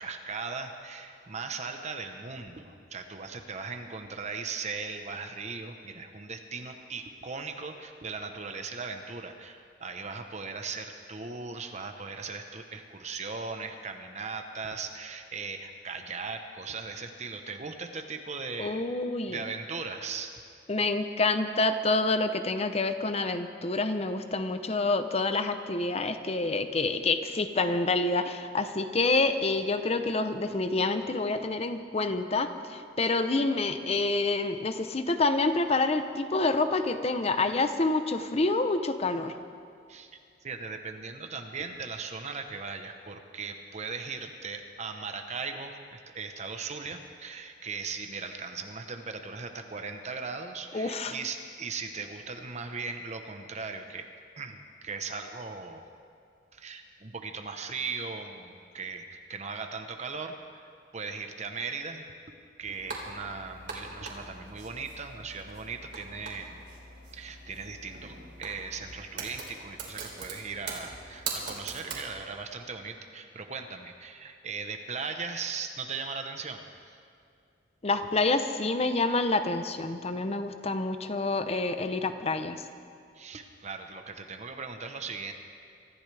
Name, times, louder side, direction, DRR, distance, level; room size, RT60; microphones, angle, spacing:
voice 1, 0.0-18.8 19.2-20.3 39.9-40.1 40.4-54.1 54.4-55.8 56.5-66.6 67.1-76.7 83.1-85.3, right 4 dB, 40° right, 6 dB, 0.9 m, -38 dB
voice 2, 18.6-19.4 20.7-39.3 50.7-51.1 77.8-82.6, left 3 dB, 35° left, 9 dB, 0.7 m, -27 dB
sound 1, 62.6-72.1, right 4 dB, 65° right, 3.3 m, -42 dB
24.5 x 14.0 x 3.4 m, 2.4 s
head